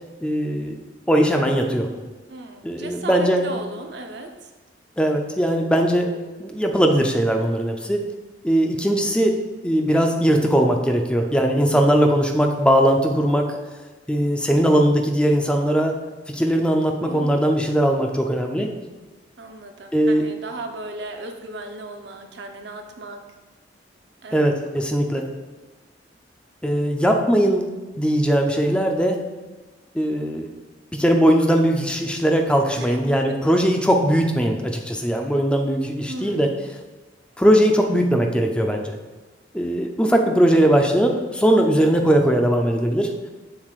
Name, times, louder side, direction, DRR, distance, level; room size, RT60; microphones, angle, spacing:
voice 1, 0.2-0.8 1.1-1.9 2.6-3.6 5.0-6.1 6.4-8.1 8.4-13.5 14.1-16.0 16.3-18.7 19.9-20.2 24.3-25.3 26.6-27.6 28.0-29.2 29.9-30.5 30.9-36.5 37.4-39.0 39.5-43.1, equal, 5° left, 2 dB, 0.5 m, -19 dB
voice 2, 2.3-4.5 17.0-17.3 19.4-23.2 24.2-24.4 32.8-33.5 36.1-36.4, right 2 dB, 70° right, 5 dB, 0.7 m, -36 dB
7.1 x 6.8 x 2.4 m, 1.3 s
head